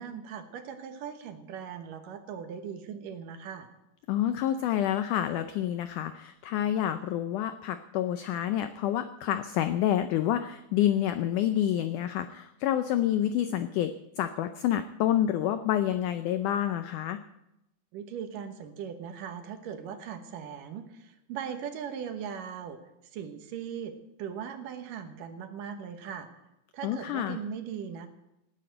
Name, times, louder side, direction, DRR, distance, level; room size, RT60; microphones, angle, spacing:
voice 1, 0.0-3.7 17.9-22.8 23.1-23.9 24.2-26.3 26.7-28.1, right 7 dB, 70° right, 7 dB, 2.6 m, -39 dB
voice 2, 4.1-13.9 14.2-17.2 26.8-27.4, left 11 dB, 85° left, 10 dB, 1.8 m, -28 dB
18.0 x 9.0 x 7.8 m, 0.88 s
omnidirectional pair, 4.3 m